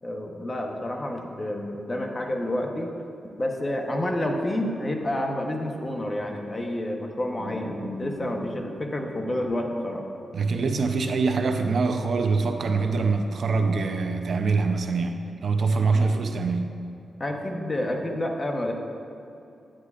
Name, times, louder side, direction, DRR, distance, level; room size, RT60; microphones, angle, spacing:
voice 1, 0.0-2.9 3.4-10.0 15.9-16.1 17.2-18.7, left 1 dB, 25° left, 2 dB, 0.9 m, -29 dB
sound 1, 7.4-10.2, left 1 dB, 50° left, 1.4 m, -39 dB
voice 2, 10.3-16.7, right 4 dB, 60° right, 6 dB, 0.5 m, -24 dB
9.9 x 9.2 x 2.4 m, 2.7 s
cardioid pair, 95°, 0 cm